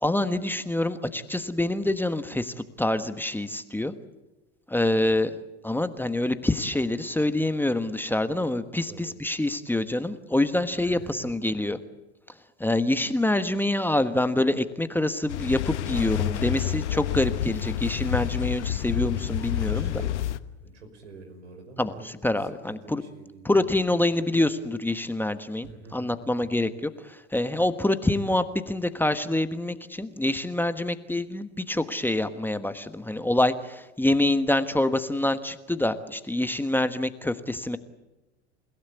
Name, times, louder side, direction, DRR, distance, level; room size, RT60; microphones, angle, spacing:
voice 1, 0.0-3.9 4.7-5.3 5.6-11.8 12.6-19.9 21.8-23.0 23.4-26.7 27.0-37.8, left 1 dB, 5° left, 10 dB, 1.3 m, -26 dB
voice 2, 10.8-11.3 19.5-20.1 20.6-23.7 25.6-26.7, right 3 dB, 90° right, 6 dB, 5.5 m, -47 dB
sound 1, 15.3-20.4, left 12 dB, 80° left, 1.1 m, -29 dB
29.5 x 16.5 x 8.4 m, 1.1 s
hypercardioid pair, 85°, 34 cm